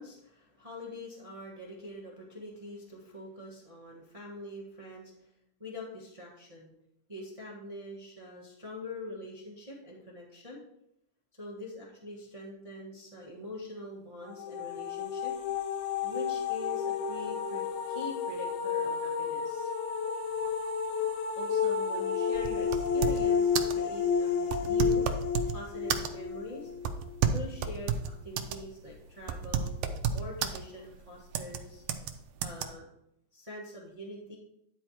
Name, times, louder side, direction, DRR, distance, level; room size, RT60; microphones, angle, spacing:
voice 1, 0.0-5.3 5.6-6.7 7.1-10.6 11.3-15.3 16.0-19.7 21.3-25.1 25.5-26.7 27.2-29.7 30.1-31.8 32.4-32.9 33.3-34.4, left 1 dB, 25° right, -4 dB, 0.8 m, -44 dB
sound 1, 14.3-27.1, left 6 dB, 80° left, 2.3 m, -31 dB
sound 2, 22.4-23.3 23.6-23.8 24.5-25.6 25.9-26.3 26.9-28.6 28.9-29.0 29.3-30.6 31.3-31.6 31.9-32.1 32.4-32.7, right 7 dB, 80° right, 1.4 m, -30 dB
10.0 x 4.4 x 4.7 m, 0.78 s
omnidirectional pair, 3.4 m